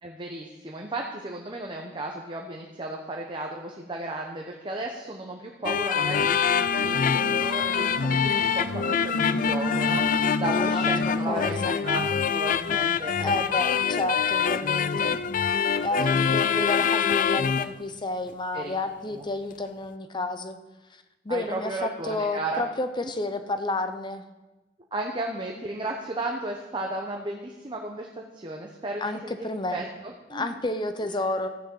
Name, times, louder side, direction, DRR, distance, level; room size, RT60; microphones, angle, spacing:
voice 1, 0.0-10.1 10.4-12.0 12.3-13.3 14.1-14.3 16.0-16.1 18.5-18.8 19.1-19.2 21.3-22.6 23.0-23.1 24.9-30.6 31.0-31.1, right 2 dB, 25° right, 0 dB, 1.0 m, -34 dB
sound 1, 5.6-17.7, left 7 dB, 45° left, 0.4 m, -25 dB
Bowed string instrument, 6.4-10.5, right 2 dB, 75° left, 0.8 m, -36 dB
voice 2, 10.5-11.7 13.2-15.2 15.8-20.6 20.9-24.2 29.0-29.9 30.3-31.5, left 2 dB, 25° left, 9 dB, 0.8 m, -31 dB
13.5 x 6.5 x 7.8 m, 1.1 s
head